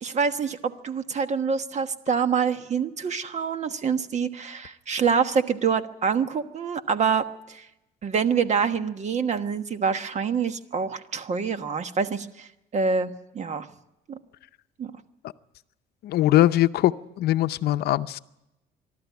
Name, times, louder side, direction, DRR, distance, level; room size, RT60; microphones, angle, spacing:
voice 1, 0.0-7.6 8.0-13.7 14.1-14.2 14.8-14.9, right 6 dB, 45° right, 10 dB, 1.2 m, -26 dB
voice 2, 16.0-18.2, left 14 dB, 70° left, 12 dB, 0.7 m, -21 dB
23.5 x 12.5 x 9.4 m, 0.91 s
cardioid pair, 110°, 17 cm